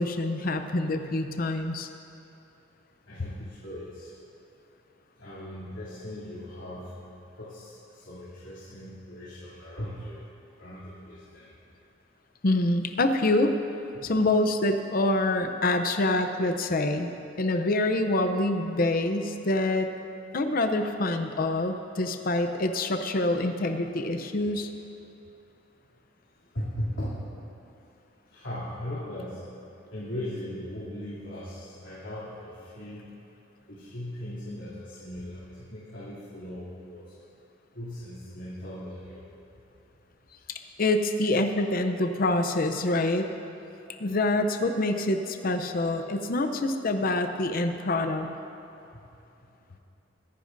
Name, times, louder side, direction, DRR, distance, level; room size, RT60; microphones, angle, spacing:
voice 1, 0.0-1.9 12.4-13.5 14.0-17.1 17.4-19.9 20.3-24.7 40.8-43.3 44.0-48.3, left 2 dB, 50° left, 7 dB, 0.7 m, -26 dB
voice 2, 3.1-4.1 5.2-7.0 7.4-10.2 10.6-11.5 13.9-14.1 26.5-27.3 28.3-29.4 29.9-33.1 33.7-37.0 37.7-39.2, left 1 dB, 85° left, -11 dB, 3.0 m, -38 dB
24.0 x 10.5 x 2.6 m, 2.8 s
head